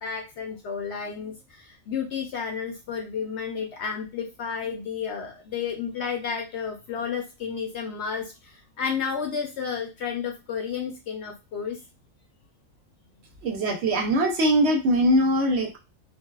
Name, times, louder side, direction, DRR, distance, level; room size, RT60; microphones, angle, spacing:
voice 1, 0.0-8.3 8.8-11.8, left 6 dB, 65° left, 1 dB, 0.7 m, -31 dB
voice 2, 13.4-15.8, equal, 65° right, 1 dB, 0.7 m, -22 dB
2.6 x 2.2 x 2.2 m, 0.26 s
omnidirectional pair, 1.5 m